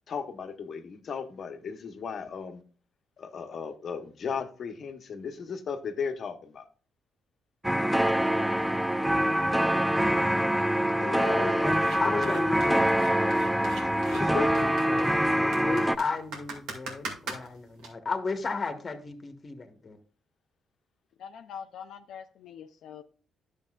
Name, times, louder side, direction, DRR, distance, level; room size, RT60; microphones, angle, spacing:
voice 1, 0.1-2.6 3.2-6.6 10.9-12.6 13.8-14.7, left 6 dB, 55° left, 0.9 m, -36 dB
sound 1, 7.6-16.0, right 1 dB, 5° right, 0.3 m, -25 dB
cutting up line, 11.7-17.9, right 3 dB, 90° right, 2.1 m, -41 dB
voice 2, 12.0-12.8 13.3-13.7 14.5-20.0, left 4 dB, 35° left, 1.3 m, -35 dB
voice 3, 21.2-23.0, left 7 dB, 75° left, 0.5 m, -43 dB
10.5 x 6.7 x 2.4 m
cardioid pair, 90°, 0 cm